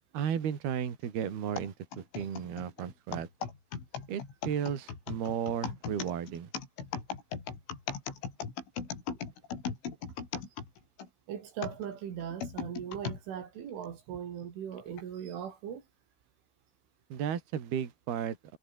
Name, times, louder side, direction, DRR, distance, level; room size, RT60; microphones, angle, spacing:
voice 1, 0.1-3.3 4.1-6.5 17.1-18.6, right 8 dB, 55° right, 4.9 m, -34 dB
sound 1, 1.6-11.1 11.6-13.2 13.8-13.9 14.8-15.0, left 6 dB, 70° left, 7.8 m, -38 dB
voice 2, 11.3-15.8, right 8 dB, 70° right, 5.5 m, -39 dB
omnidirectional pair, 5.8 m